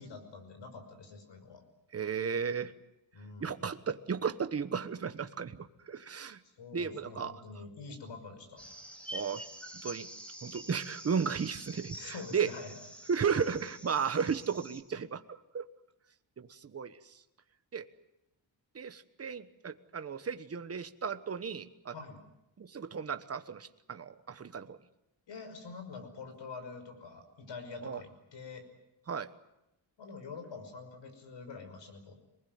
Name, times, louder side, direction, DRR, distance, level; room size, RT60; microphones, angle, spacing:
voice 1, 0.0-1.6 3.1-3.6 6.4-8.6 11.9-12.8 21.9-22.2 25.3-28.7 30.0-32.2, left 4 dB, 65° left, 7 dB, 5.6 m, -46 dB
voice 2, 1.9-2.7 3.4-6.4 6.7-7.3 9.1-9.4 9.8-10.1 10.4-12.5 13.1-15.7 16.4-17.0 17.7-17.8 18.7-21.9 22.6-24.8 27.8-28.0 29.1-29.3, right 6 dB, 30° right, 9 dB, 1.2 m, -34 dB
sound 1, 8.6-14.8, right 1 dB, 5° left, 2.4 m, -47 dB
26.5 x 20.0 x 9.4 m, 0.89 s
wide cardioid pair, 160°, 46 cm